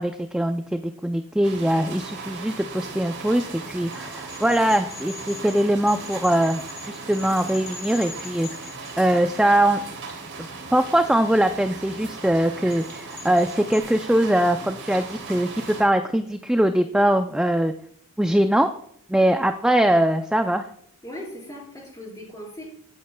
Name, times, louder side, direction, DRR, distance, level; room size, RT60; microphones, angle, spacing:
voice 1, 0.0-8.5 9.0-9.8 10.4-17.7 18.2-18.7 19.1-20.7, right 1 dB, 5° right, 7 dB, 0.3 m, -22 dB
sound 1, 1.4-15.8, right 4 dB, 80° right, 3.6 m, -38 dB
sound 2, 3.9-9.4 12.7-13.8, left 6 dB, 55° left, 3.5 m, -42 dB
voice 2, 21.0-22.6, left 1 dB, 15° left, -3 dB, 4.5 m, -38 dB
16.0 x 8.6 x 2.2 m, 0.65 s
head